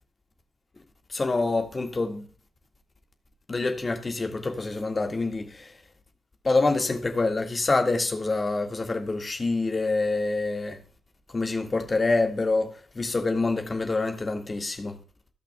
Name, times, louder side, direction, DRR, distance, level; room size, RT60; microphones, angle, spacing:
voice 1, 1.1-2.2 3.5-5.7 6.4-10.8 11.3-15.0, left 3 dB, 35° left, 1.7 m, -26 dB
17.5 x 5.8 x 2.2 m
hypercardioid pair, 40°, 0 cm